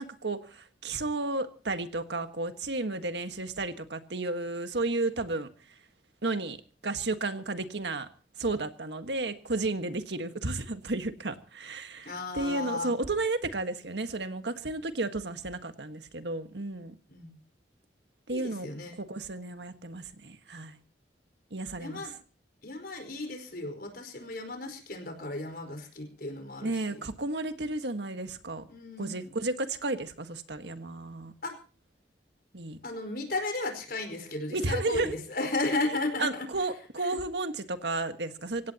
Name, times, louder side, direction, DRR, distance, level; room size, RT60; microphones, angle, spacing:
voice 1, 0.0-5.5 6.2-6.6 6.8-8.1 8.4-16.9 18.3-18.7 19.0-20.8 21.5-22.1 26.6-28.7 29.0-31.3 32.5-32.8 34.5-35.2 36.2-38.7, right 2 dB, 75° right, 8 dB, 1.6 m, -33 dB
voice 2, 12.0-12.9 17.1-17.4 18.3-19.0 21.8-22.1 22.6-27.0 28.7-29.3 31.4-31.5 32.8-36.4 37.0-37.1, left 2 dB, 55° left, 7 dB, 4.8 m, -34 dB
25.0 x 17.0 x 2.9 m, 0.37 s
head